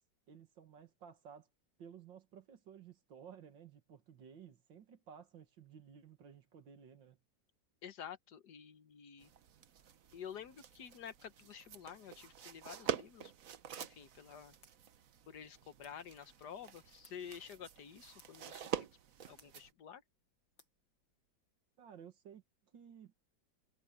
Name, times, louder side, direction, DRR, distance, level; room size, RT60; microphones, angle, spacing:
voice 1, 0.3-1.5 1.8-7.2 21.8-23.1, right 7 dB, 80° right, 2.3 m, -56 dB
voice 2, 7.8-9.3 10.1-13.3 13.7-14.5 15.3-18.9 19.3-20.0, left 8 dB, 60° left, 1.7 m, -50 dB
sound 1, 9.2-19.7, right 9 dB, 55° right, 1.2 m, -46 dB
sound 2, 13.8-21.4, left 3 dB, 85° left, 8.5 m, -72 dB
omnidirectional pair, 2.0 m